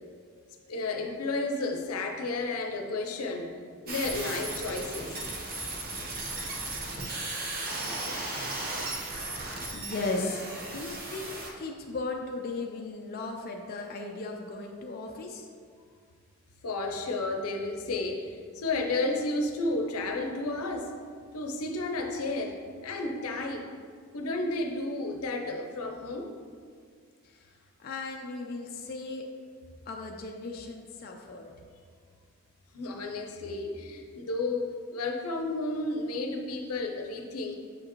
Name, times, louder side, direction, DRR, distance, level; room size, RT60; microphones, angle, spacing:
voice 1, 0.7-3.5 3.9-5.2 16.6-20.9 21.3-23.7 24.1-26.3 32.7-37.6, left 2 dB, 90° left, 3 dB, 0.7 m, -32 dB
sound 1, 3.9-11.5, right 2 dB, 45° right, 0.8 m, -36 dB
voice 2, 9.7-10.5 10.7-15.5 27.2-27.5 27.8-29.2 29.9-31.5, left 3 dB, 45° left, 1 dB, 0.4 m, -36 dB
7.3 x 4.9 x 3.0 m, 2.1 s
head